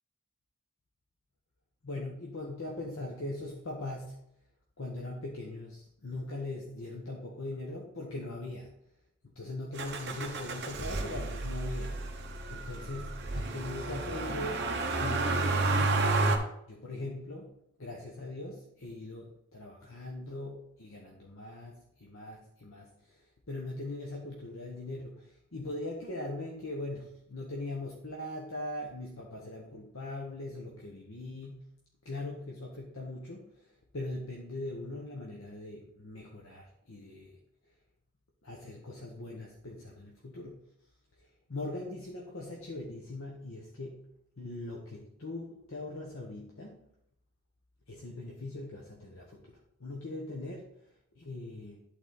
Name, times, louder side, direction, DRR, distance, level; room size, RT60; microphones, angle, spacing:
voice 1, 1.8-4.2 4.8-8.7 9.3-11.9 12.5-14.6 15.0-16.0 16.7-17.5 17.8-19.3 19.5-31.7 32.0-37.4 38.4-40.6 41.2-44.1 44.4-46.8 47.9-50.7 51.1-51.8, left 2 dB, 65° left, -1 dB, 1.0 m, -41 dB
Motor vehicle (road), 9.8-16.4, right 3 dB, 50° right, 1.0 m, -31 dB
11.0 x 4.0 x 3.9 m, 0.76 s
head